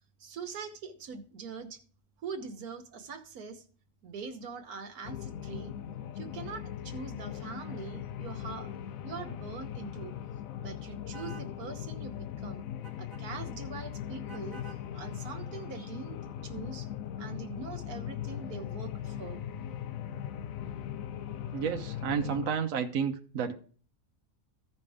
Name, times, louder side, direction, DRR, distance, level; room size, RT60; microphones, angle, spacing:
voice 1, 0.2-1.8 2.2-3.6 4.0-5.7 6.1-8.8 9.0-10.1 10.6-12.7 13.0-16.2 16.4-16.9 17.2-19.5, right 5 dB, 80° right, 1.6 m, -43 dB
sound 1, 5.0-22.5, left 10 dB, 70° left, 1.0 m, -39 dB
sound 2, 11.1-11.5 12.8-13.2 14.3-14.8, right 3 dB, 30° left, 2.1 m, -48 dB
voice 2, 21.5-23.5, right 7 dB, 65° right, 1.1 m, -31 dB
15.0 x 5.5 x 3.4 m
omnidirectional pair, 1.6 m